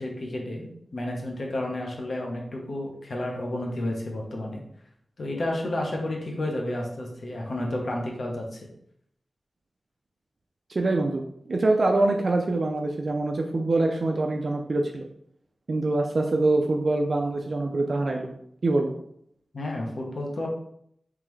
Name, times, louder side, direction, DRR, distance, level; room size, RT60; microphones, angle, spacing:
voice 1, 0.0-4.6 5.2-8.6 19.5-20.5, left 1 dB, 65° left, -1 dB, 0.8 m, -31 dB
voice 2, 10.7-15.1 15.7-18.3 18.6-18.9, right 2 dB, 55° right, 2 dB, 0.4 m, -24 dB
3.7 x 3.1 x 3.1 m, 0.71 s
wide cardioid pair, 110°, 0 cm